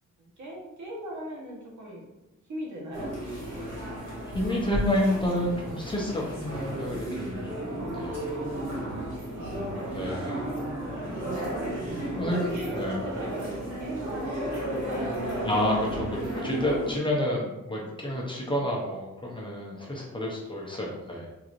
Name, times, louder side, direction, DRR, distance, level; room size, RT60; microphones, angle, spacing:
voice 1, 0.2-2.1 2.5-3.3 4.0-4.1 8.5-9.1 9.5-10.0 10.6-11.5 12.1-15.5 16.4-16.5, right 1 dB, 65° right, -2 dB, 1.1 m, -40 dB
sound 1, 2.9-17.0, right 1 dB, 40° right, 1.5 m, -33 dB
voice 2, 4.2-7.6 7.9-8.2 9.9-10.4 11.0-11.3 12.2-13.0 15.4-16.1 16.3-21.3, left 1 dB, 15° left, -3 dB, 0.6 m, -29 dB
3.8 x 2.9 x 2.5 m, 0.97 s
wide cardioid pair, 145°, 31 cm